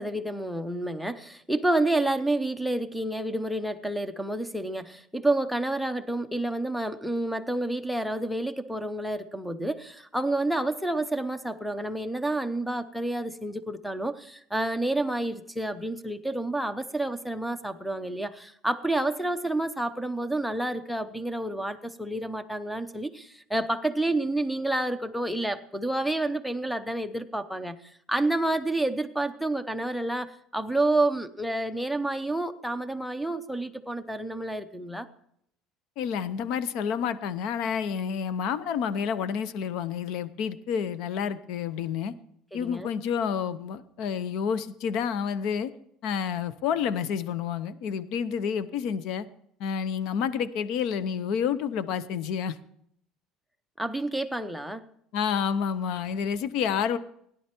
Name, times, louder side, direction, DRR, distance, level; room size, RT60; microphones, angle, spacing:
voice 1, 0.0-35.1 42.5-42.9 53.8-54.9, right 2 dB, ahead, 13 dB, 0.6 m, -29 dB
voice 2, 36.0-42.1 42.5-45.7 46.0-49.3 49.6-52.6 55.1-57.0, left 7 dB, 55° left, 15 dB, 0.7 m, -29 dB
17.0 x 10.5 x 4.4 m, 0.71 s
cardioid pair, 165°, 0 cm